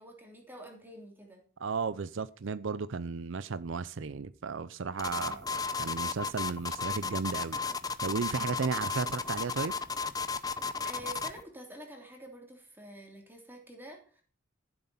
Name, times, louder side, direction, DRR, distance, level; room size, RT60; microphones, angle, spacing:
voice 1, 0.0-1.4 5.1-5.4 10.8-14.2, right 1 dB, 10° right, 3.2 m, -48 dB
voice 2, 1.6-7.6 8.0-9.7, right 5 dB, 70° right, 0.5 m, -34 dB
sound 1, 5.0-11.4, left 5 dB, 20° left, 0.7 m, -34 dB
14.0 x 7.8 x 5.5 m
head